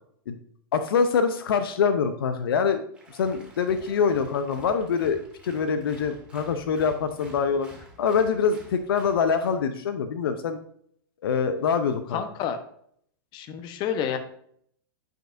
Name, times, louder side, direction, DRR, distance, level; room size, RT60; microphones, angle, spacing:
voice 1, 0.7-2.8 3.1-7.7 8.0-10.6 11.2-12.2, left 6 dB, 75° left, 9 dB, 0.6 m, -24 dB
Applause, 2.9-9.6, right 2 dB, 10° right, 1.9 m, -49 dB
voice 2, 12.1-12.6 13.3-14.2, left 8 dB, 40° left, 8 dB, 0.9 m, -29 dB
8.9 x 5.2 x 2.6 m, 0.64 s
hypercardioid pair, 120°, 12 cm